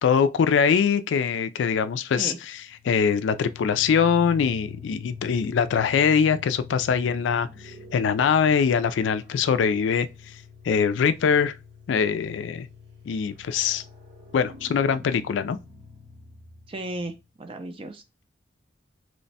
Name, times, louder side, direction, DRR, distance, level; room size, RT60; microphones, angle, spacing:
voice 1, 0.0-2.6 2.8-10.1 10.6-11.5 11.9-12.7 13.1-13.8 14.3-15.6, left 6 dB, 80° left, 0.3 m, -23 dB
sound 1, 2.6-17.2, left 5 dB, 85° right, 1.1 m, -45 dB
voice 2, 16.7-18.0, right 2 dB, 30° right, 0.4 m, -35 dB
3.1 x 2.1 x 4.0 m
head